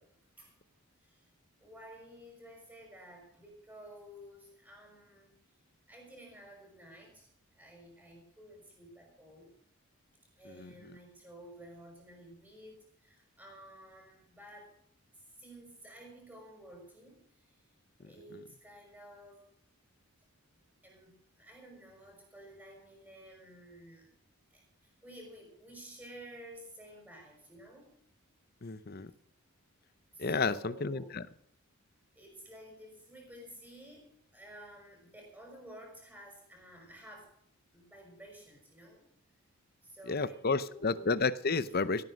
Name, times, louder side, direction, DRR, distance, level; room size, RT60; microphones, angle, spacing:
voice 1, 1.6-5.4 5.9-7.3 7.6-9.5 10.4-14.8 15.4-17.7 18.0-19.5 20.8-24.1 24.5-27.9 30.1-31.1 32.2-37.3 37.7-39.0 39.8-41.1, right 1 dB, 5° right, 1 dB, 5.7 m, -52 dB
voice 2, 28.6-29.1 30.2-31.3 40.1-42.0, left 4 dB, 45° left, 15 dB, 0.7 m, -31 dB
17.0 x 9.4 x 6.4 m, 0.65 s
head